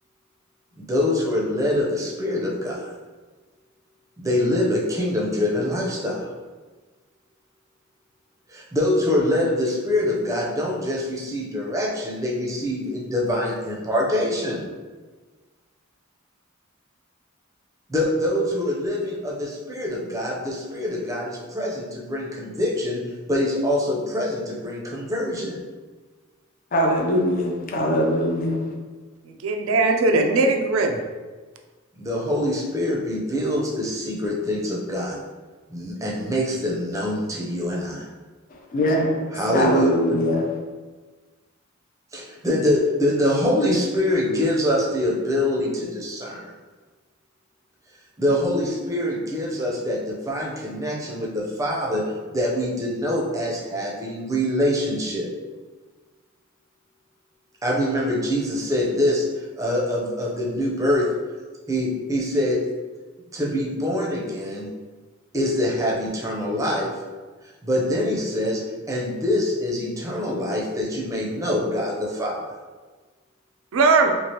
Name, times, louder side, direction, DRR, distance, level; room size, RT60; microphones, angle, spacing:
voice 1, 0.8-2.9 4.2-6.3 8.5-14.6 17.9-25.6 32.0-35.2 35.7-38.1 39.3-39.9 42.1-46.4 48.2-52.0 52.3-55.3 57.6-61.0 61.7-62.6 63.3-64.7 65.3-66.9 67.6-68.6 68.9-72.4, left 1 dB, 15° right, 0.5 m, -24 dB
voice 2, 26.7-28.6 38.5-40.5, equal, 40° left, 0.5 m, -22 dB
voice 3, 29.4-31.0 73.7-74.1, right 3 dB, 75° right, 0.4 m, -19 dB
3.1 x 2.4 x 2.8 m
head